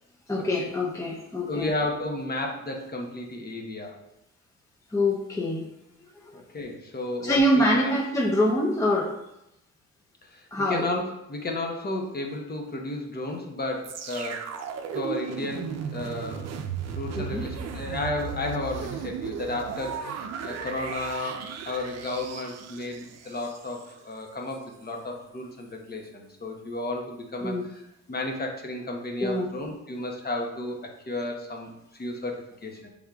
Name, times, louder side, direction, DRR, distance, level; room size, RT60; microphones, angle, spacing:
voice 1, 0.3-1.7 4.9-5.7 6.3-6.4 7.2-9.1 10.5-10.9 17.1-17.4 27.4-27.6 29.2-29.5, left 1 dB, 10° left, -2 dB, 0.6 m, -25 dB
voice 2, 1.5-3.9 6.3-7.9 10.2-14.5 14.9-16.5 16.9-27.8 28.1-32.9, left 2 dB, 30° left, 1 dB, 0.9 m, -33 dB
sound 1, 13.8-23.9 24.5-24.6, right 6 dB, 60° right, 0.6 m, -36 dB
6.4 x 3.5 x 2.4 m, 0.86 s
cardioid pair, 90°, 30 cm